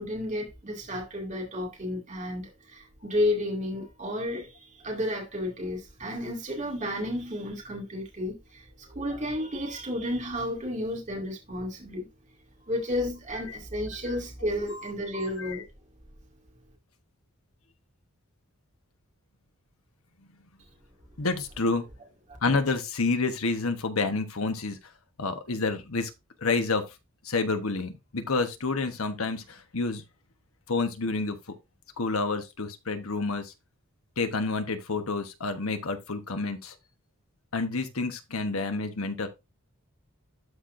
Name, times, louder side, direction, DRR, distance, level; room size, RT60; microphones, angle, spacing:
voice 1, 0.0-8.4 8.9-12.1 12.7-15.6, left 1 dB, 35° right, 2.3 m, -32 dB
voice 2, 14.7-15.6 21.2-21.8 22.4-24.8 25.2-26.1 26.4-26.8 27.2-30.0 30.7-31.4 32.0-33.5 34.2-36.7 37.5-39.3, left 3 dB, 75° left, 1.2 m, -29 dB
12.5 x 4.4 x 2.6 m
head